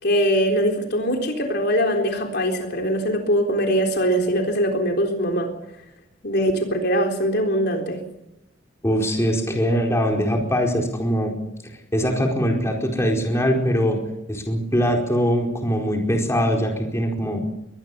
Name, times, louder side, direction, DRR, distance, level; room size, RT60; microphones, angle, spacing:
voice 1, 0.0-5.5 6.2-8.0, equal, 60° left, 3 dB, 3.9 m, -22 dB
voice 2, 8.8-11.3 11.9-14.0 14.3-17.4, equal, 15° left, 1 dB, 4.7 m, -22 dB
23.0 x 19.5 x 7.0 m, 0.88 s
head